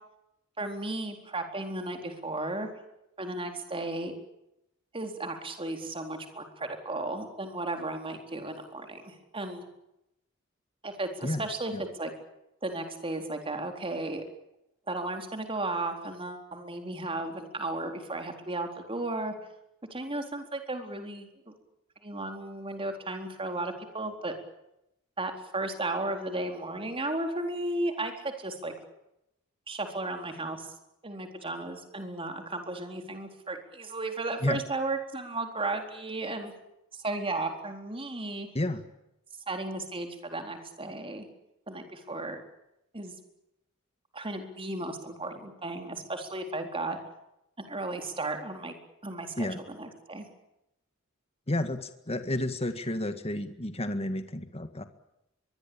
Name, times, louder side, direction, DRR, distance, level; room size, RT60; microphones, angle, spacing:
voice 1, 0.6-2.7 3.2-4.1 4.9-9.6 10.8-11.7 12.0-12.1 12.6-14.2 14.9-19.3 19.9-21.5 22.0-24.3 25.2-28.7 29.7-30.7 31.0-36.5 36.9-38.5 39.5-41.3 41.7-42.4 42.9-43.1 44.1-47.0 47.6-48.7 49.0-50.3, right 2 dB, 25° right, 5 dB, 4.0 m, -34 dB
voice 2, 51.5-54.8, left 1 dB, 30° left, 9 dB, 1.9 m, -31 dB
23.5 x 22.5 x 8.8 m, 0.85 s
head